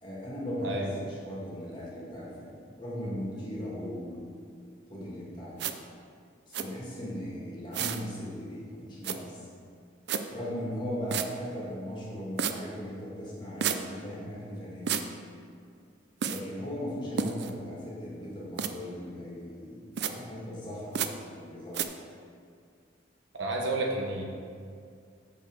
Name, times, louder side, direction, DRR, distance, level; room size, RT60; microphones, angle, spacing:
voice 1, 0.0-4.3 4.9-5.7 6.5-9.5 10.3-15.0 16.2-21.9, equal, 25° left, -7 dB, 1.9 m, -38 dB
sound 1, 5.6-5.7 6.5-6.6 7.7-8.0 9.0-9.2 10.1-10.2 11.1-11.3 12.4-12.5 13.6-13.8 14.9-15.0 16.2-16.4 17.2-17.5 18.6-18.7 20.0-20.1 20.9-21.1 21.7-21.8, right 7 dB, 55° right, 0.4 m, -30 dB
voice 2, 23.4-24.2, right 2 dB, 70° right, 0 dB, 1.2 m, -30 dB
6.4 x 5.5 x 6.3 m, 2.2 s
head